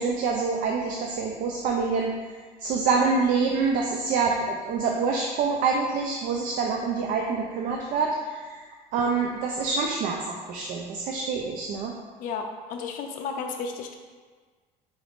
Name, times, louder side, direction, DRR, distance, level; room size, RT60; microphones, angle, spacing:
voice 1, 0.0-2.1 2.6-8.6 8.9-11.9, right 4 dB, 55° right, 0 dB, 0.4 m, -26 dB
voice 2, 12.2-14.0, left 5 dB, 55° left, 3 dB, 0.4 m, -33 dB
3.7 x 2.4 x 3.4 m, 1.5 s
cardioid pair, 130°, 16 cm